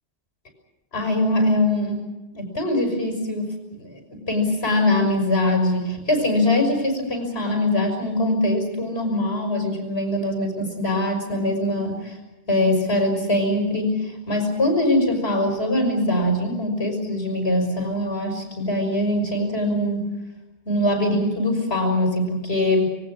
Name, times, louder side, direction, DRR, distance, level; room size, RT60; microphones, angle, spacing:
voice 1, 0.9-2.0 2.3-12.2 12.5-20.1 20.7-22.9, left 1 dB, 75° left, 4 dB, 6.2 m, -22 dB
26.5 x 23.5 x 6.3 m, 1.0 s
omnidirectional pair, 1.1 m